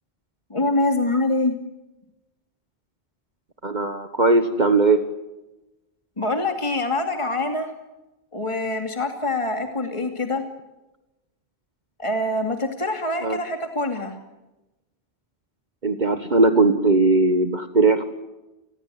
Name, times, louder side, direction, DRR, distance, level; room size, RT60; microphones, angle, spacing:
voice 1, 0.5-1.6 6.2-7.7 8.3-10.4 12.0-14.2, left 2 dB, 30° left, 5 dB, 2.6 m, -25 dB
voice 2, 3.6-5.0 13.2-13.4 15.8-18.1, right 3 dB, 45° right, 8 dB, 1.6 m, -19 dB
29.5 x 20.5 x 7.8 m, 1.0 s
omnidirectional pair, 1.1 m